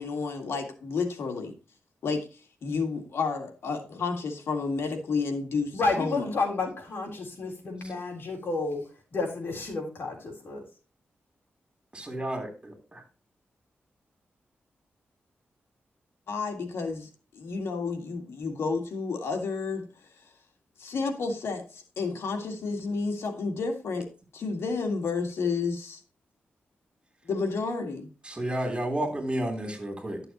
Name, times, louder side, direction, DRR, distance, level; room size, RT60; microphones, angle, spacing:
voice 1, 0.0-1.6 2.0-6.3 16.3-19.9 20.2-20.3 20.8-24.1 24.3-26.0 27.2-28.1, left 4 dB, 85° left, 4 dB, 1.9 m, -31 dB
voice 2, 5.7-8.8 9.1-10.6, left 3 dB, 60° left, 1 dB, 3.8 m, -30 dB
voice 3, 11.9-13.0 28.2-30.2, right 1 dB, 25° right, 4 dB, 3.4 m, -32 dB
11.5 x 6.8 x 3.0 m, 0.34 s
cardioid pair, 75°, 4 cm